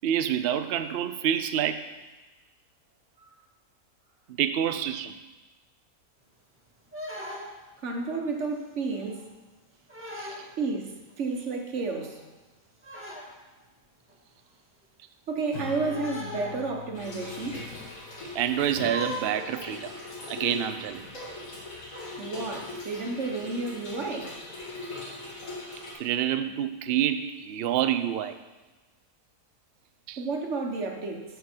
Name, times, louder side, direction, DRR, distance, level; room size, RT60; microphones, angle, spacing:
voice 1, 0.0-1.8 4.4-5.2 10.2-10.5 18.3-19.9 20.3-21.1 26.0-28.4 30.1-30.2, right 10 dB, 85° right, 10 dB, 0.5 m, -27 dB
sound 1, 6.9-7.7 8.2-8.5 8.9-9.3 9.9-10.5 11.1-11.2 11.4-11.5 11.9-12.2 12.8-13.4 14.1-14.2 15.8-16.9 17.2-17.3 18.7-19.8 20.4-20.5 20.7-21.0 21.9-22.1 23.0-23.2 23.8-23.9 24.5-24.7, left 1 dB, 10° right, 1.6 m, -40 dB
voice 2, 7.8-9.2 10.6-12.2 15.3-17.6 22.2-24.4 30.2-31.2, right 3 dB, 50° right, 2 dB, 1.4 m, -31 dB
Acoustic guitar / Strum, 15.5-20.3, left 3 dB, 90° left, 3.9 m, -45 dB
Trickle dribble / Fill (with liquid), 16.9-25.9, left 2 dB, 55° left, 2.3 m, -40 dB
13.5 x 5.4 x 4.4 m, 1.2 s
omnidirectional pair, 1.6 m